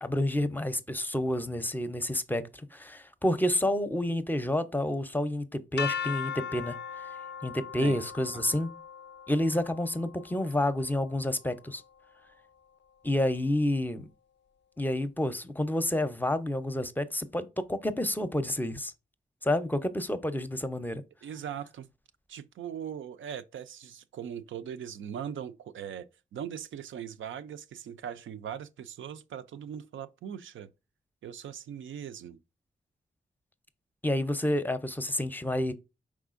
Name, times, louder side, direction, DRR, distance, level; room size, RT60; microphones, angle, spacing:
voice 1, 0.0-2.4 2.7-6.8 7.4-8.7 9.3-11.8 13.0-14.1 14.8-18.9 19.4-21.0 34.0-35.7, left 1 dB, 10° left, 0.6 m, -29 dB
sound 1, 5.8-11.7, left 7 dB, 60° left, 0.4 m, -39 dB
voice 2, 21.2-21.9 22.3-30.7 31.2-32.4, right 8 dB, 75° right, 0.4 m, -40 dB
4.8 x 3.5 x 2.5 m
supercardioid pair, 40°, 20 cm